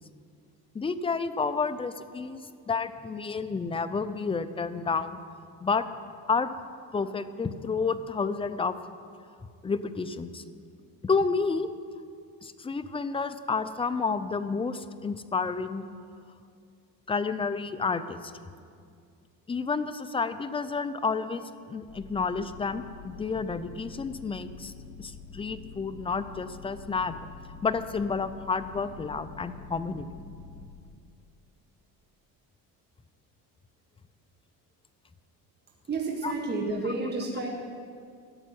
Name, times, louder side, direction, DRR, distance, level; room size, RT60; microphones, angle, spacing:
voice 1, 0.7-2.4 2.7-5.2 5.6-5.8 6.3-6.5 6.9-8.7 9.6-10.4 11.0-11.7 12.4-15.8 17.1-18.3 19.5-24.7 25.0-27.1 27.6-30.1 36.2-36.3, left 4 dB, 15° left, 11 dB, 0.6 m, -30 dB
sound 1, 21.9-30.7, left 4 dB, 40° left, 2.4 m, -46 dB
voice 2, 35.9-37.5, right 3 dB, 25° right, -1 dB, 1.8 m, -30 dB
14.0 x 7.4 x 9.3 m, 2.3 s
cardioid pair, 120°, 38 cm